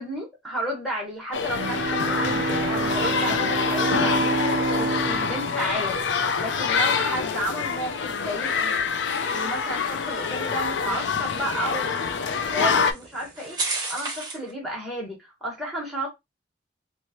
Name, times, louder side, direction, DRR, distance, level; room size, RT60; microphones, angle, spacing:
voice 1, 0.0-4.4 4.7-16.1, right 1 dB, ahead, 1.4 m, -32 dB
sound 1, 1.3-12.9, left 5 dB, 70° left, 0.4 m, -26 dB
Bowed string instrument, 1.5-6.8, right 3 dB, 75° right, 0.4 m, -29 dB
sound 2, 4.0-14.5, right 2 dB, 25° right, 1.4 m, -39 dB
3.1 x 2.6 x 2.9 m
head